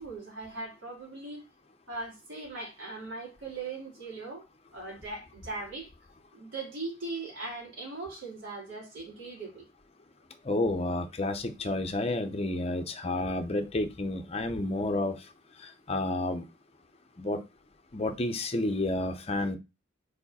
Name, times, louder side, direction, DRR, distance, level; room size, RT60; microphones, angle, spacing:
voice 1, 0.0-1.4 1.9-4.4 4.7-5.9 6.3-9.7, right 3 dB, 70° right, -2 dB, 3.4 m, -39 dB
voice 2, 10.4-15.2 15.9-16.5 17.2-17.4 17.9-19.6, left 2 dB, 30° left, 7 dB, 0.6 m, -30 dB
4.8 x 4.8 x 4.1 m, 0.26 s
head